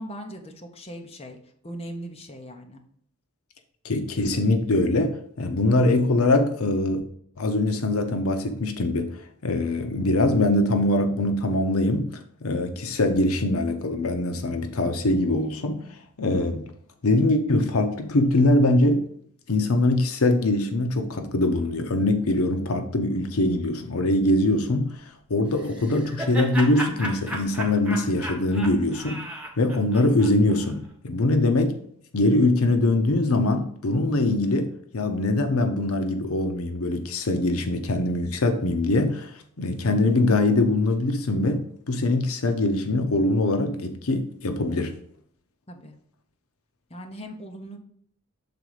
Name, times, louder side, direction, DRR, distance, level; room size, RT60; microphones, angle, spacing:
voice 1, 0.0-1.4 1.6-2.8 45.7-46.0 46.9-47.8, equal, 30° left, 0.9 m, -39 dB
voice 2, 3.8-7.0 7.4-9.1 9.4-15.8 16.2-16.7 17.0-19.1 19.5-25.0 25.3-29.2 29.6-31.8 32.1-44.9, left 2 dB, 70° left, 0.7 m, -23 dB
Laughter, 25.5-30.7, right 1 dB, 5° right, 1.2 m, -35 dB
6.8 x 3.8 x 4.8 m
head